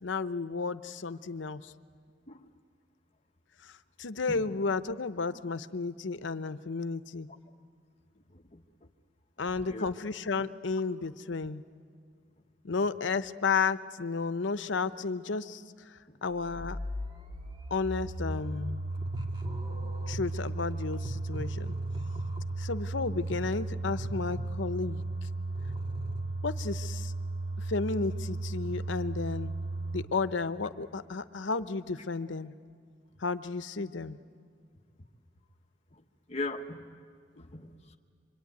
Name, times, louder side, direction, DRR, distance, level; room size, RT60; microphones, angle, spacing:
voice 1, 0.0-1.7 4.0-7.3 9.4-11.6 12.6-15.6 16.2-16.8 17.7-18.8 20.1-21.8 22.6-25.0 26.4-27.1 27.7-29.5 29.9-32.5 33.2-34.2, left 4 dB, 80° left, 12 dB, 0.8 m, -32 dB
sound 1, 16.4-30.1, right 2 dB, 25° right, 2.4 m, -35 dB
voice 2, 36.3-36.9 37.4-38.0, left 2 dB, 35° left, 6 dB, 1.2 m, -39 dB
25.5 x 24.5 x 9.4 m, 2.1 s
head